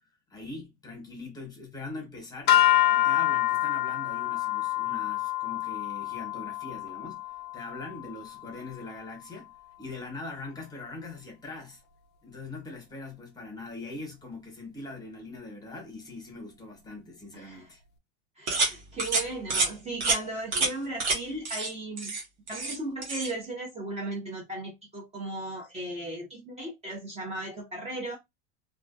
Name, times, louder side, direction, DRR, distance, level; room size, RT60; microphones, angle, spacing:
voice 1, 0.3-2.6 2.9-7.2 7.5-9.5 9.8-11.8 12.2-17.8 20.5-20.7, left 3 dB, 10° left, 1.1 m, -42 dB
sound 1, 2.5-8.8, left 13 dB, 30° left, 0.5 m, -27 dB
voice 2, 17.3-17.7 18.4-22.2 22.5-28.2, right 2 dB, 20° right, 0.7 m, -36 dB
sound 2, 18.5-18.7 19.0-19.2 19.5-19.7 20.0-20.2 20.5-20.7 21.0-21.2 21.4-21.7 22.0-22.8 23.0-23.3, right 3 dB, 90° right, 1.0 m, -27 dB
2.3 x 2.1 x 2.6 m
hypercardioid pair, 110°, 33 cm